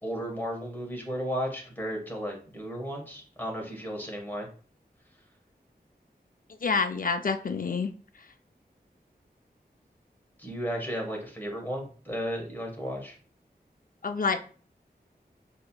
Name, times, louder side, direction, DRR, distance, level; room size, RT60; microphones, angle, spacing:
voice 1, 0.0-4.5 10.4-13.2, equal, 10° left, 0 dB, 1.5 m, -34 dB
voice 2, 6.6-7.9 14.0-14.4, left 4 dB, 55° left, 8 dB, 0.5 m, -27 dB
6.3 x 2.9 x 2.3 m, 0.42 s
wide cardioid pair, 55°, 17 cm